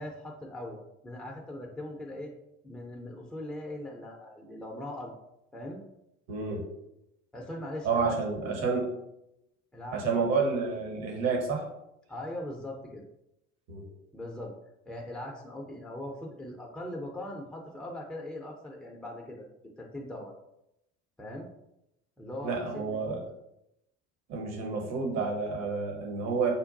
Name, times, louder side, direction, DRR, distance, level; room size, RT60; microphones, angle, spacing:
voice 1, 0.0-2.3 2.6-5.2 5.5-5.8 7.3-8.2 9.7-10.2 12.1-13.0 14.1-14.5 14.9-19.5 19.8-20.3 21.2-21.5 22.2-23.2, left 1 dB, ahead, -1 dB, 0.5 m, -40 dB
voice 2, 6.3-6.6 7.8-8.9 9.9-11.7 13.7-13.9 22.4-23.2 24.3-26.5, right 4 dB, 50° right, 1 dB, 1.0 m, -29 dB
5.3 x 2.2 x 2.5 m, 0.84 s
figure-of-eight pair, 65°, 35 cm